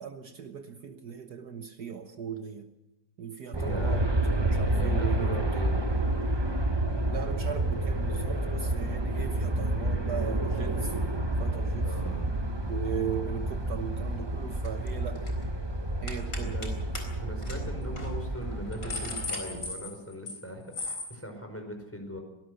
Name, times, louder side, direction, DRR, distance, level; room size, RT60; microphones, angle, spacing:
voice 1, 0.0-2.7 3.2-4.1 4.3-5.6 7.1-10.9 11.4-11.9 12.7-15.2 16.0-16.9, right 7 dB, 60° right, 6 dB, 1.7 m, -38 dB
voice 2, 3.5-4.0 4.7-5.8 11.8-12.2 16.4-16.7 17.2-22.2, equal, 5° left, 3 dB, 5.0 m, -39 dB
Aircraft, 3.5-19.7, right 1 dB, 20° right, 0.9 m, -29 dB
sound 1, 14.6-14.9 15.2-15.4 16.1-16.7 17.0-17.1 17.4-17.6 18.0-18.1 18.5-20.4 20.7-21.1, left 3 dB, 50° left, 4.6 m, -36 dB
24.0 x 18.5 x 6.5 m, 0.94 s
omnidirectional pair, 2.0 m